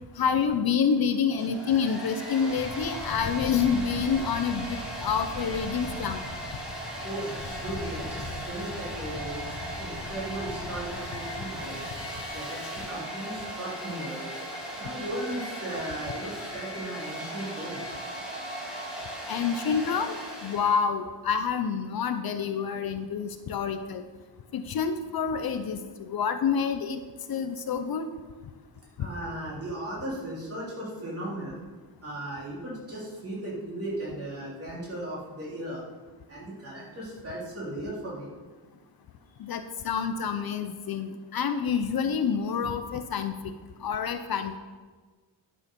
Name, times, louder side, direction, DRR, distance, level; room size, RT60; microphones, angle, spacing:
voice 1, 0.2-6.2 19.3-24.0 24.5-27.0 27.3-28.1 29.0-29.1 39.4-43.3 43.8-44.6, left 6 dB, 55° left, 8 dB, 0.7 m, -28 dB
Domestic sounds home sounds, 1.3-20.8, right 1 dB, ahead, 2.5 m, -38 dB
sound 1, 2.5-12.3, left 2 dB, 25° left, 1.7 m, -41 dB
voice 2, 7.0-11.8 12.3-12.6 12.9-14.3 14.8-17.8 29.0-31.6 32.0-35.8 36.3-38.3, right 1 dB, 35° right, -6 dB, 3.4 m, -36 dB
11.0 x 6.5 x 5.3 m, 1.4 s
wide cardioid pair, 175°, 43 cm